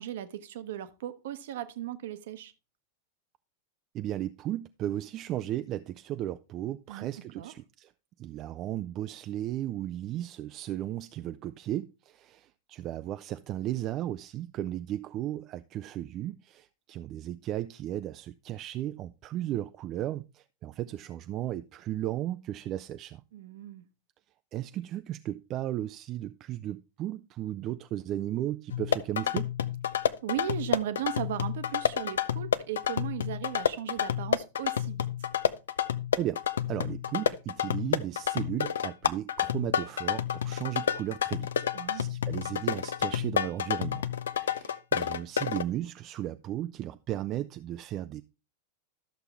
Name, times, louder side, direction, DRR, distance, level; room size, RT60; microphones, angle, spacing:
voice 1, 0.0-2.5 6.9-7.1 7.3-7.5 23.3-23.8 30.2-35.1 41.7-42.1, right 11 dB, 55° right, 0.9 m, -37 dB
voice 2, 3.9-7.9 8.2-23.2 24.5-29.5 36.2-36.4 36.7-41.7 41.9-44.0 44.4-48.2, right 13 dB, 35° right, 0.4 m, -35 dB
sound 1, 28.7-45.6, left 9 dB, 65° left, 0.5 m, -30 dB
12.5 x 6.8 x 3.4 m
figure-of-eight pair, 90°, 0 cm